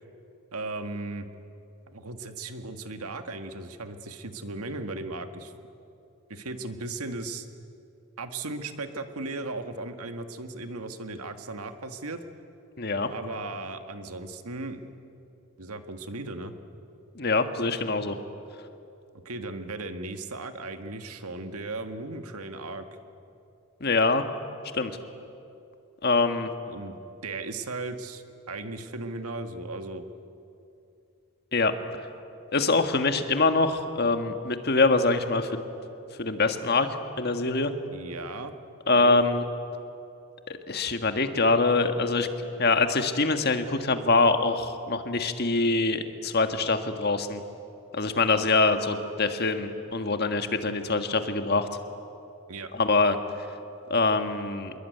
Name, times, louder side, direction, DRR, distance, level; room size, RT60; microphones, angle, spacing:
voice 1, 0.5-1.3 1.9-5.5 6.3-7.5 8.2-12.2 13.1-14.9 15.6-16.5 19.3-22.8 26.7-27.0 27.2-30.0 37.9-38.5 38.9-39.2 52.5-52.7, right 2 dB, 90° right, 7 dB, 1.8 m, -36 dB
voice 2, 12.8-13.1 17.1-18.2 23.8-24.2 24.7-24.9 26.0-26.5 31.5-31.7 32.5-35.6 36.2-36.9 37.2-37.7 38.9-39.4 40.5-42.3 42.6-47.4 47.9-51.7 52.7-53.1 53.9-54.7, left 3 dB, 45° left, 7 dB, 1.7 m, -24 dB
26.5 x 22.0 x 9.4 m, 2.7 s
head